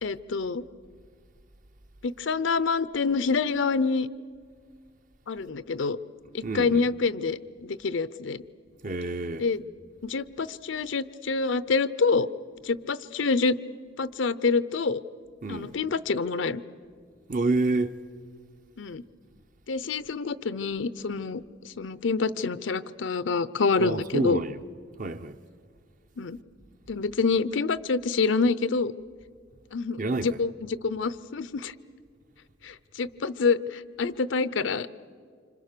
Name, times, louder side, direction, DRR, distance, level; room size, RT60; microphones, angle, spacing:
voice 1, 0.0-0.6 2.0-4.1 5.3-6.0 6.3-8.4 9.4-9.6 10.0-12.3 12.6-13.6 14.0-15.0 15.5-16.6 18.8-19.0 19.7-24.4 26.2-26.4 26.9-28.9 29.7-31.7 32.6-34.9, left 4 dB, 75° left, 0.6 m, -27 dB
voice 2, 6.4-6.8 8.8-9.4 15.4-15.8 17.3-18.0 23.8-24.6 25.0-25.4 30.0-30.3, right 2 dB, 45° right, 0.7 m, -28 dB
27.0 x 25.5 x 6.7 m
head